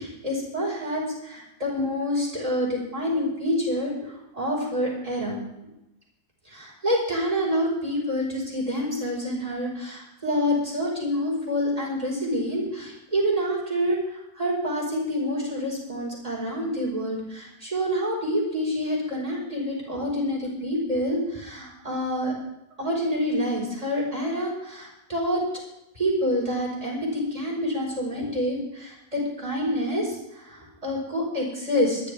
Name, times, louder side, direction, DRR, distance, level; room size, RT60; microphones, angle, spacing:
voice 1, 0.0-5.4 6.5-22.3 22.8-25.4 25.9-32.0, equal, 25° right, -3 dB, 5.1 m, -27 dB
26.0 x 11.0 x 3.5 m, 0.88 s
omnidirectional pair, 1.5 m